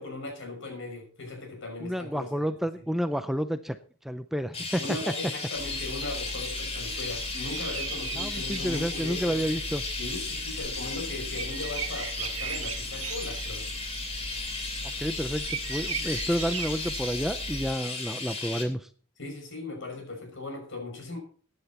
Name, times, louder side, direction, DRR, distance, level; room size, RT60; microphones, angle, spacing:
voice 1, 0.0-2.5 4.8-9.5 10.0-13.7 19.2-21.2, left 2 dB, 65° left, 3 dB, 6.2 m, -38 dB
voice 2, 1.8-3.8 4.0-4.8 8.2-9.8 14.8-18.9, equal, ahead, 10 dB, 0.5 m, -30 dB
Chirp tweet, 4.5-18.6, left 3 dB, 30° left, 2.9 m, -35 dB
sound 1, 5.5-17.7, right 4 dB, 75° right, 1.2 m, -38 dB
15.0 x 10.0 x 4.2 m, 0.43 s
head